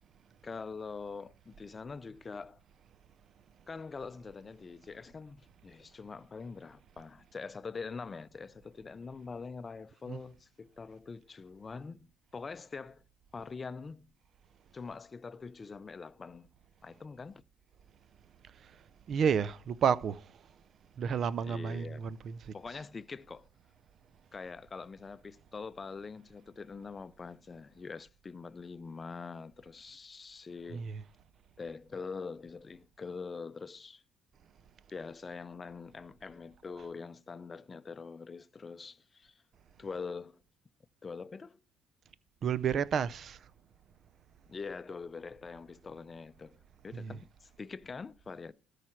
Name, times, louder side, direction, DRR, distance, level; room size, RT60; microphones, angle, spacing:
voice 1, 0.4-2.6 3.7-13.0 13.3-14.1 14.7-16.5 16.8-17.4 21.4-22.1 22.5-23.5 24.3-30.9 31.6-34.0 34.9-39.4 39.8-40.4 41.0-41.6 44.5-46.6 46.8-48.5, left 4 dB, 30° left, 0.5 m, -44 dB
voice 2, 19.1-20.3 21.0-22.8 30.7-31.0 36.8-36.9 42.4-43.4 46.9-47.2, right 7 dB, 55° right, 0.5 m, -31 dB
13.0 x 5.0 x 5.9 m
supercardioid pair, 70°, 0 cm